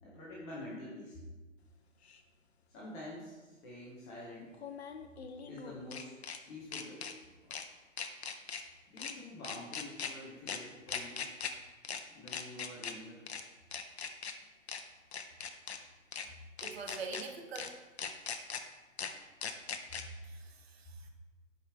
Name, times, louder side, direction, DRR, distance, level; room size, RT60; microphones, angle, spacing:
voice 1, 0.0-1.2 2.7-4.5 5.4-6.1 6.5-7.1 8.9-11.3 12.1-13.2, left 1 dB, 10° left, -6 dB, 0.5 m, -47 dB
sound 1, 2.1-2.2 4.5-6.4 6.7-7.1 7.5-7.6 8.0-8.6 9.0-9.1 9.4-10.1 10.5-10.6 10.9-11.5 11.8-12.0 12.3-12.9 13.3-13.4 13.7-14.3 14.7-14.8 15.1-15.8 16.1-16.3 16.6-17.2 17.5-17.7 18.0-18.6 19.0-19.1 19.4-20.0, left 7 dB, 55° left, 0.7 m, -40 dB
voice 2, 16.6-17.7 20.2-21.1, right 4 dB, 50° right, 4 dB, 1.0 m, -44 dB
10.0 x 4.9 x 3.3 m, 1.2 s
figure-of-eight pair, 125°, 40 cm